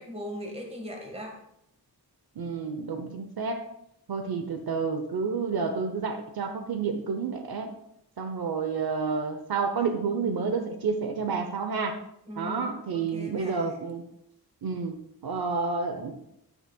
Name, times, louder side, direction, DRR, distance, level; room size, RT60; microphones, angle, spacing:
voice 1, 0.0-1.4 12.3-13.8, equal, 15° right, 1 dB, 1.7 m, -39 dB
voice 2, 2.4-3.7 4.1-7.7 8.2-11.9 12.4-14.0 14.6-15.0 15.2-16.2, right 5 dB, 70° right, 6 dB, 0.9 m, -30 dB
10.0 x 9.6 x 2.3 m, 0.78 s
wide cardioid pair, 130°, 39 cm